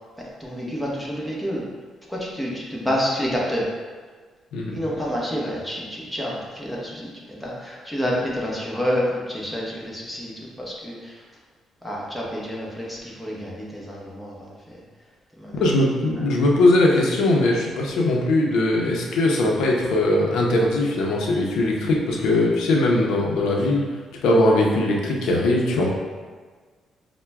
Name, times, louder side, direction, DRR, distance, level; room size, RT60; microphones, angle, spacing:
voice 1, 0.2-1.6 2.1-3.6 4.7-10.3 10.6-11.2 11.8-14.6 15.4-15.6, equal, 5° left, -4 dB, 0.8 m, -28 dB
voice 2, 15.6-23.8 24.2-25.9, left 2 dB, 85° left, -1 dB, 0.6 m, -20 dB
5.6 x 2.1 x 2.3 m, 1.5 s
cardioid pair, 90°, 0 cm